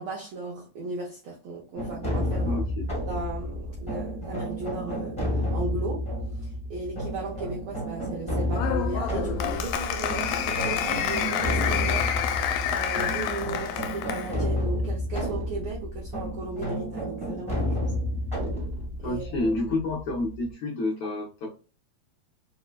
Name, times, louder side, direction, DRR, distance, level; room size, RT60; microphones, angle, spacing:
voice 1, 0.0-2.6 3.1-17.9 19.0-19.5, right 3 dB, 75° right, 1.2 m, -36 dB
sound 1, 1.8-20.5, left 1 dB, 5° left, 0.9 m, -31 dB
voice 2, 2.4-2.9 19.0-21.5, left 2 dB, 70° left, 1.4 m, -29 dB
Applause, 8.5-14.3, left 9 dB, 85° left, 1.9 m, -28 dB
4.8 x 2.1 x 2.3 m
omnidirectional pair, 3.3 m